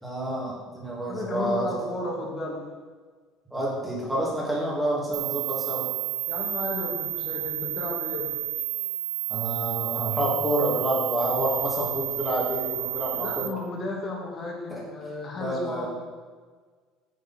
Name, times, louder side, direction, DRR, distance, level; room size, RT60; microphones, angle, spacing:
voice 1, 0.0-1.7 3.5-5.9 9.3-13.5 14.7-14.8 15.4-15.9, right 1 dB, 5° right, -5 dB, 2.8 m, -28 dB
voice 2, 1.1-2.6 6.3-8.3 13.1-15.9, left 2 dB, 30° left, -1 dB, 2.1 m, -33 dB
sound 1, 5.1-13.5, right 13 dB, 80° right, 0.8 m, -31 dB
9.3 x 6.9 x 4.5 m, 1.5 s
cardioid pair, 145°, 0 cm